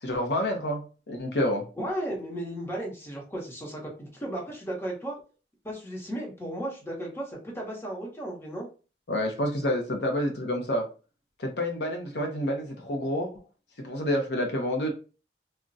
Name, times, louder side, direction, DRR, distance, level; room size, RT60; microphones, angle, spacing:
voice 1, 0.0-1.7 9.1-10.8 11.4-13.3 13.8-14.9, left 1 dB, 70° left, 0.6 m, -28 dB
voice 2, 1.8-5.2 5.6-8.7, right 1 dB, 15° left, 0.9 m, -35 dB
2.3 x 2.1 x 3.9 m
head